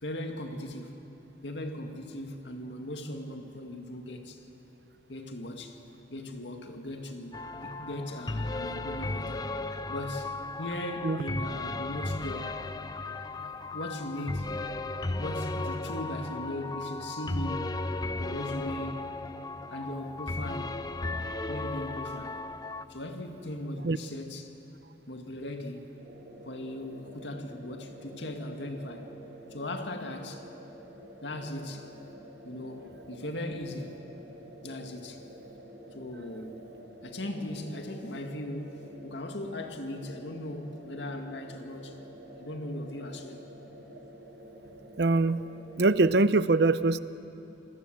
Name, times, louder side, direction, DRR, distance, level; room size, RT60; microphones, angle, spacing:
voice 1, 0.0-1.0 1.4-4.4 5.1-5.8 6.1-9.5 9.9-12.5 13.7-14.6 15.0-17.7 18.2-19.1 19.7-20.8 21.5-22.4 22.9-24.5 25.1-26.0 26.5-29.1 29.5-30.4 31.2-31.9 32.4-34.0 34.6-35.2 35.9-36.6 37.0-42.0 42.4-43.5 44.6-44.7, left 1 dB, 75° left, 4 dB, 2.1 m, -38 dB
sound 1, 7.3-22.8, left 2 dB, 20° left, 0.6 m, -35 dB
sound 2, 26.0-46.0, right 1 dB, 85° right, 4.7 m, -49 dB
voice 2, 45.0-45.4 45.8-47.0, right 3 dB, 60° right, 14 dB, 0.6 m, -23 dB
27.5 x 19.5 x 7.8 m, 2.8 s
head